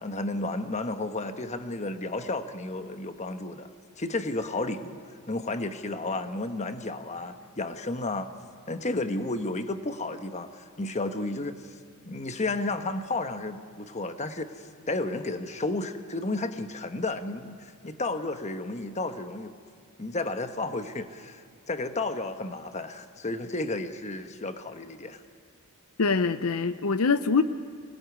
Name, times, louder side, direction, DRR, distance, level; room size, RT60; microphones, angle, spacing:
voice 1, 0.0-3.7 4.0-5.0 5.3-8.3 8.7-11.7 12.0-19.6 20.0-25.2, left 2 dB, 35° left, 8 dB, 1.2 m, -32 dB
voice 2, 26.0-27.4, left 4 dB, 75° left, 12 dB, 0.7 m, -24 dB
24.0 x 18.0 x 9.4 m, 2.2 s
head